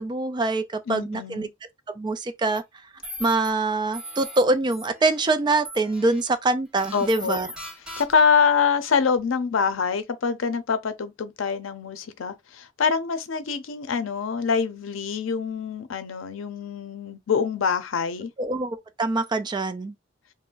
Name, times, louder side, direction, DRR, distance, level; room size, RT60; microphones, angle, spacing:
voice 1, 0.0-1.5 2.0-2.6 3.2-7.5 18.4-19.9, right 2 dB, 25° right, 0.3 m, -24 dB
voice 2, 0.9-1.5 6.9-7.4 8.0-18.3, left 6 dB, 90° left, 0.5 m, -25 dB
sound 1, 2.4-2.6 3.0-3.5 3.9-4.4 4.7-5.3 5.6-6.2 6.8-8.3, equal, 5° right, 0.9 m, -39 dB
2.5 x 2.0 x 3.7 m
head